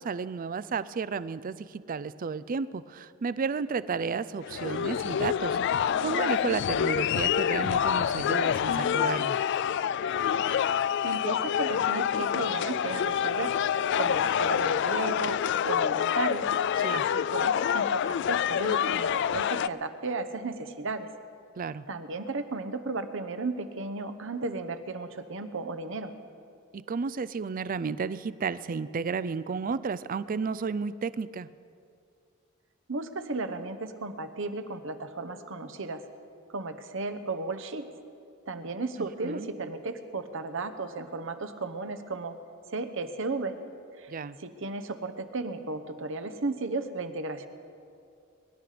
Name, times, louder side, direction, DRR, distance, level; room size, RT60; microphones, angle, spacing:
voice 1, 0.0-5.6 6.0-9.4 16.8-17.0 21.6-21.8 26.7-31.5 39.0-39.5 44.1-44.4, right 5 dB, 40° right, 17 dB, 0.4 m, -32 dB
sound 1, 4.4-19.7, left 8 dB, 55° left, 0.3 m, -27 dB
voice 2, 11.0-13.5 14.0-16.4 16.9-17.0 17.3-21.1 21.9-26.1 32.9-36.0 36.5-37.8 38.5-42.3 42.7-43.5 44.0-44.1 44.4-47.5, right 3 dB, 65° right, 9 dB, 0.9 m, -34 dB
23.0 x 11.0 x 5.0 m, 2.5 s
head